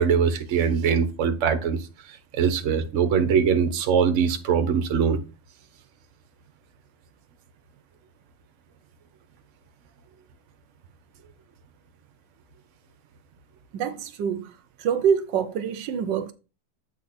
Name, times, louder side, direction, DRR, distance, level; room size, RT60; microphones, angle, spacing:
voice 1, 0.0-5.2, right 6 dB, 50° right, 1.1 m, -22 dB
voice 2, 13.7-16.3, right 7 dB, 80° right, 1.4 m, -26 dB
8.3 x 4.7 x 4.3 m
omnidirectional pair, 2.0 m